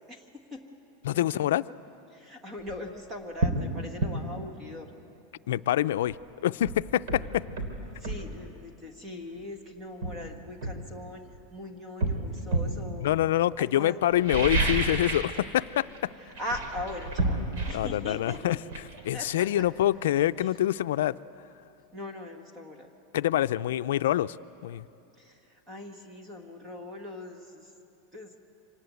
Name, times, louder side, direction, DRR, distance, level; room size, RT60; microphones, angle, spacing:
voice 1, 1.0-1.6 5.5-6.2 6.4-7.4 13.0-16.1 17.7-18.6 19.0-21.2 23.1-24.4 24.6-24.8, left 13 dB, 85° left, 14 dB, 0.5 m, -26 dB
voice 2, 2.1-4.9 7.9-11.2 11.5-13.1 13.6-14.2 16.2-18.6 19.1-19.6 20.4-20.5 21.9-22.9 25.2-27.8 28.1-28.3, left 1 dB, 15° right, 3 dB, 1.5 m, -40 dB
sound 1, 2.6-2.8 3.4-3.6 4.0-4.2 6.1-6.2 6.6-8.3 9.3-9.5 10.0-11.4 12.0-12.8 14.1-15.4 15.6-16.0 16.3-19.9 20.2-20.3, right 2 dB, 60° right, 3.1 m, -30 dB
25.5 x 19.0 x 8.4 m, 2.8 s
supercardioid pair, 175°, 0 cm